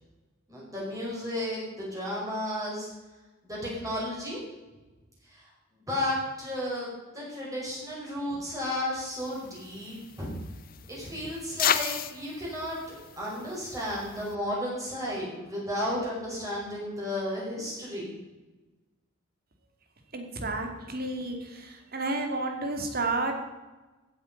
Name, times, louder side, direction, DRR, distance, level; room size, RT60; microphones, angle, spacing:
voice 1, 0.5-2.9 3.4-4.4 5.9-6.9 7.1-10.3 10.9-12.8 13.2-18.2, left 1 dB, 15° right, -5 dB, 5.3 m, -33 dB
sound 1, 9.2-14.4, left 9 dB, 45° left, 0.7 m, -34 dB
voice 2, 20.1-23.3, right 2 dB, 45° right, 4 dB, 2.4 m, -31 dB
15.5 x 8.6 x 5.3 m, 1.2 s
head